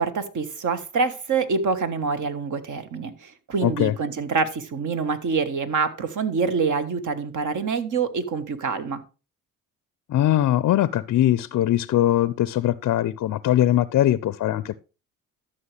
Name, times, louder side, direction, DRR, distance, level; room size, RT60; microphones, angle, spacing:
voice 1, 0.0-9.0, right 5 dB, 50° right, 1.4 m, -26 dB
voice 2, 3.6-3.9 10.1-14.7, left 12 dB, 45° left, 0.5 m, -21 dB
13.0 x 6.4 x 3.3 m
hypercardioid pair, 60°, 38 cm